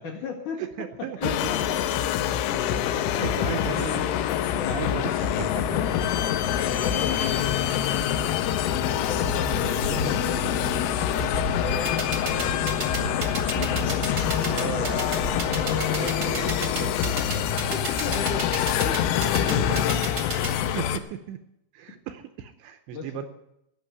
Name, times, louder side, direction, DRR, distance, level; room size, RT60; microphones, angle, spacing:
voice 1, 0.0-1.8 2.4-3.1 4.6-5.0 5.7-5.9 6.2-8.3 8.7-11.2 11.6-13.6 17.7-20.1 20.4-20.5 22.9-23.3, left 5 dB, 55° left, 1 dB, 2.5 m, -37 dB
voice 2, 0.6-1.4 1.9-2.0 2.7-2.8 3.2-5.8 13.6-17.2 19.4-19.8 20.5-21.4 21.7-23.3, right 11 dB, 80° right, 8 dB, 2.6 m, -36 dB
sound 1, 1.2-21.0, left 10 dB, 85° left, 3.2 m, -26 dB
sound 2, 3.5-20.1, left 1 dB, 35° left, 1.9 m, -37 dB
sound 3, 11.8-20.5, right 4 dB, 50° right, 1.1 m, -31 dB
17.5 x 6.5 x 9.4 m, 0.82 s
omnidirectional pair, 5.7 m